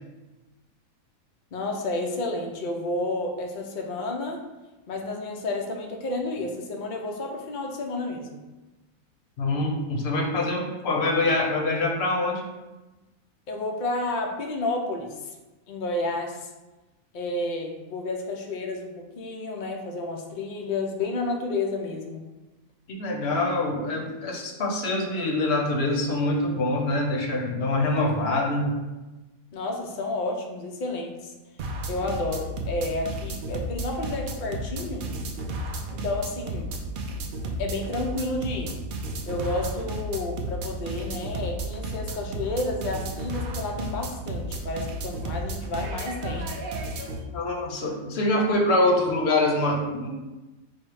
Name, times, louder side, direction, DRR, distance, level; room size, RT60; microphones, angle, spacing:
voice 1, 1.5-4.4 4.9-8.4 13.5-15.4 15.7-16.5 17.1-22.2 29.5-31.3 31.9-35.1 35.9-36.7 37.6-38.7 39.2-46.5, left 2 dB, 85° left, 1 dB, 0.4 m, -31 dB
voice 2, 9.4-12.5 22.9-28.7 47.3-50.1, left 2 dB, 55° left, 1 dB, 0.8 m, -25 dB
sound 1, 31.6-47.2, right 1 dB, 90° right, 0.4 m, -33 dB
4.4 x 2.1 x 4.6 m, 1.1 s
omnidirectional pair, 1.5 m